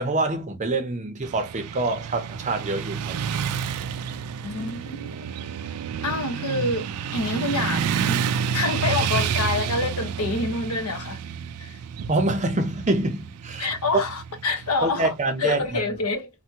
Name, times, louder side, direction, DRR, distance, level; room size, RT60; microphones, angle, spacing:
voice 1, 0.0-3.2 12.1-13.7 14.8-15.8, right 2 dB, 35° right, 0.6 m, -26 dB
Motorcycle / Traffic noise roadway noise, 1.2-15.3, right 7 dB, 90° right, 0.4 m, -30 dB
voice 2, 4.4-5.1 6.0-6.8 7.1-8.2 8.5-11.2 11.6-11.8 13.6-15.1 15.4-16.3, left 3 dB, 80° left, 1.0 m, -27 dB
3.3 x 2.2 x 2.7 m
head